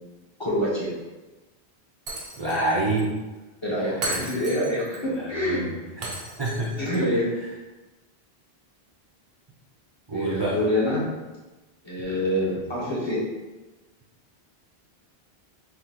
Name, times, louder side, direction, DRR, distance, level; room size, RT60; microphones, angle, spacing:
voice 1, 0.4-0.9 3.6-5.6 6.8-7.3 10.1-11.0 11.8-13.2, equal, 25° left, -8 dB, 1.1 m, -26 dB
Shatter, 2.1-2.7 3.0-3.1 4.0-5.0 6.0-7.0, right 2 dB, 70° right, 0.9 m, -35 dB
voice 2, 2.4-3.1 3.7-4.2 5.1-6.7 10.1-10.6 12.0-12.5, right 2 dB, 30° right, -7 dB, 0.5 m, -29 dB
3.7 x 3.0 x 2.9 m, 1.1 s
omnidirectional pair, 1.1 m